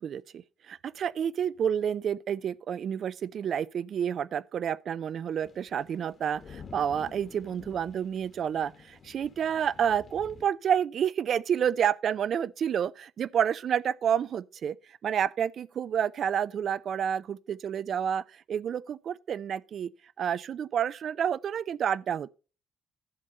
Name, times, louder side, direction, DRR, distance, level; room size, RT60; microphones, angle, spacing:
voice 1, 0.0-19.9 20.2-22.3, right 8 dB, 60° right, 0.3 m, -29 dB
sound 1, 5.4-10.5, left 6 dB, 50° left, 1.5 m, -50 dB
11.0 x 6.5 x 4.0 m
cardioid pair, 90°, 0 cm